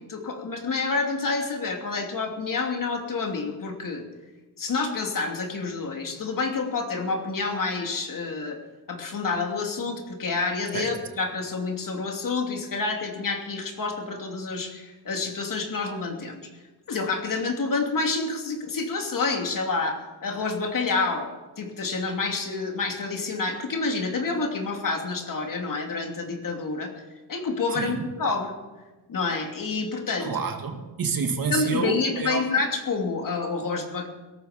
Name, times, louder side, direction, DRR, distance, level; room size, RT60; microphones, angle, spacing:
voice 1, 0.0-4.0 4.6-8.6 8.9-16.5 16.9-21.3 21.6-26.9 27.3-28.5 29.1-30.4 31.5-34.1, left 4 dB, 55° left, 2 dB, 2.9 m, -28 dB
voice 2, 27.7-28.1 30.2-32.4, right 5 dB, 60° right, 5 dB, 2.1 m, -29 dB
18.0 x 13.5 x 5.2 m, 1.2 s
wide cardioid pair, 125°, 40 cm